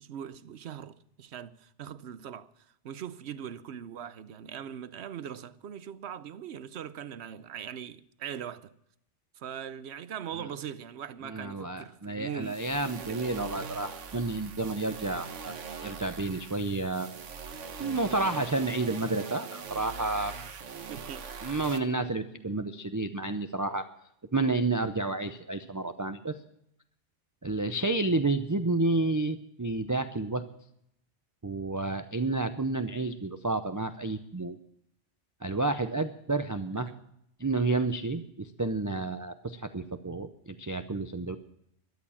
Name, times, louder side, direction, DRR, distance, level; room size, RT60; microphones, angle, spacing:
voice 1, 0.0-8.7 9.3-13.5 18.2-18.6 20.3-20.5 20.9-21.2 36.8-37.0, right 9 dB, 65° right, 1.0 m, -41 dB
voice 2, 11.2-15.6 15.8-17.1 17.8-20.3 21.4-23.9 24.3-26.3 27.4-30.4 31.4-34.6 35.4-36.9 37.4-41.4, right 2 dB, 20° right, 0.5 m, -30 dB
sound 1, 12.4-21.8, right 6 dB, 85° right, 1.4 m, -42 dB
13.0 x 11.5 x 7.2 m
omnidirectional pair, 1.2 m